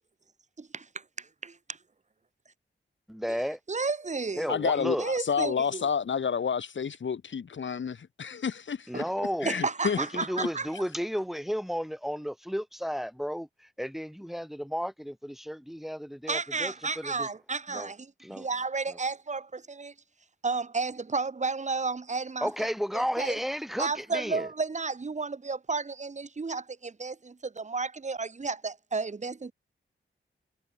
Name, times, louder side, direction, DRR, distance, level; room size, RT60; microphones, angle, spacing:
voice 1, 0.6-1.8 3.7-4.5 5.0-5.9 8.9-9.1 9.4-10.7 16.3-19.9 20.4-22.7 23.2-23.4 23.8-29.5, right 4 dB, 35° right, 2.8 m, -32 dB
voice 2, 3.1-3.6 4.4-5.1 8.9-9.6 10.0-17.3 17.7-17.9 18.2-18.5 18.9-19.0 22.4-24.5, equal, ahead, 2.6 m, -33 dB
voice 3, 4.5-9.0 9.4-10.0 10.4-10.5, left 6 dB, 70° left, 4.7 m, -30 dB
wide cardioid pair, 145°, 20 cm